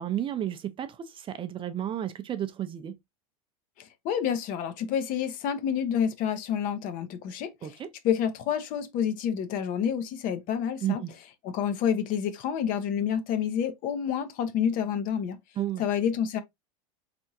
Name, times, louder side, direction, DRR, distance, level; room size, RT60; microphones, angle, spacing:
voice 1, 0.0-3.0 7.6-7.9 10.8-11.1 15.6-15.8, right 11 dB, 30° right, 0.5 m, -32 dB
voice 2, 3.8-7.8 8.0-11.0 11.4-15.4 15.8-16.4, left 8 dB, 50° left, 0.8 m, -28 dB
3.5 x 3.4 x 2.7 m
hypercardioid pair, 100°, 18 cm